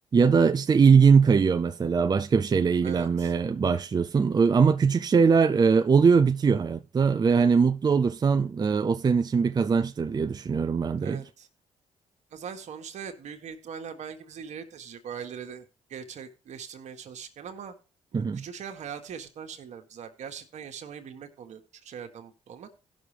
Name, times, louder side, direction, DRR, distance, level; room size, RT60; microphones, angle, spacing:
voice 1, 0.1-11.2 18.1-18.4, right 5 dB, 35° right, 0.5 m, -21 dB
voice 2, 2.8-3.3 11.0-11.5 12.3-17.7 18.1-22.7, right 7 dB, 65° right, 1.5 m, -41 dB
16.0 x 6.3 x 3.3 m
supercardioid pair, 55°, 13 cm